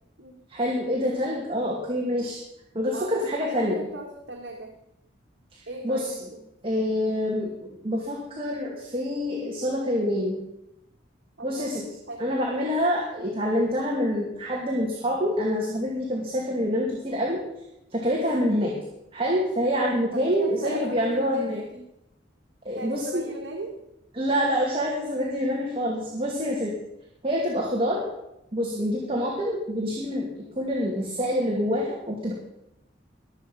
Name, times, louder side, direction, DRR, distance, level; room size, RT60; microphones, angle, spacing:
voice 1, 0.5-2.4 2.7-3.8 5.8-6.1 6.6-10.4 11.4-11.8 12.2-17.4 17.9-18.8 19.1-21.6 22.6-23.3 24.1-26.7 27.2-28.0 28.5-32.3, equal, 30° right, -2 dB, 2.4 m, -26 dB
voice 2, 2.9-4.7 5.7-6.5 11.4-11.8 12.1-12.3 18.5-18.7 20.1-21.8 22.8-23.8 25.7-25.8 29.0-29.3, right 1 dB, 75° right, 0 dB, 1.9 m, -38 dB
22.5 x 8.1 x 5.5 m, 0.84 s
head